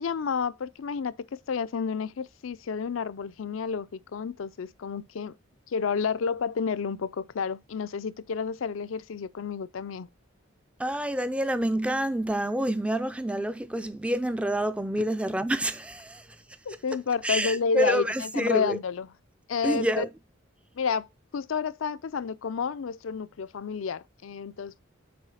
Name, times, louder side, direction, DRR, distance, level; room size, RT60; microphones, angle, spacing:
voice 1, 0.0-5.4 5.7-10.1 16.7-19.1 19.5-20.0 20.7-21.1 21.3-24.8, left 5 dB, 75° left, 0.5 m, -30 dB
voice 2, 10.8-16.4 17.2-18.8 19.6-20.1, right 1 dB, 5° right, 0.4 m, -28 dB
6.9 x 4.8 x 4.8 m
head